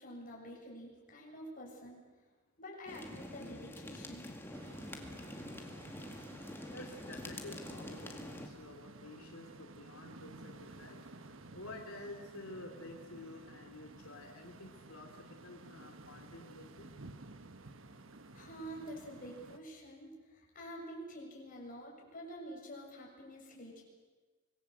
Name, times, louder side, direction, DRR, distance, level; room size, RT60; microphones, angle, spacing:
voice 1, 0.0-2.1 2.6-4.4 18.3-23.8, equal, 40° left, -2 dB, 7.0 m, -48 dB
sound 1, 2.9-8.5, left 1 dB, 10° left, 2.1 m, -46 dB
sound 2, 4.5-19.6, right 2 dB, 65° right, 1.3 m, -54 dB
voice 2, 6.5-11.0 11.3-16.9, left 2 dB, 85° left, 2 dB, 2.6 m, -50 dB
25.5 x 20.0 x 7.9 m, 1.3 s
head